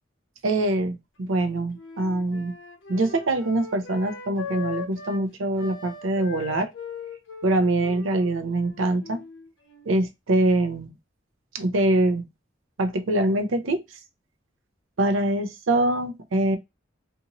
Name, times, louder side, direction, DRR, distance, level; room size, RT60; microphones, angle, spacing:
voice 1, 0.4-2.5 2.9-6.7 7.4-9.2 9.8-10.9 11.5-12.2 12.8-13.8 15.0-16.6, right 1 dB, 75° right, 0.6 m, -24 dB
Wind instrument woodwind instrument, 1.2-5.3 5.6-10.0, left 5 dB, 75° left, 0.9 m, -39 dB
2.6 x 2.5 x 2.8 m
head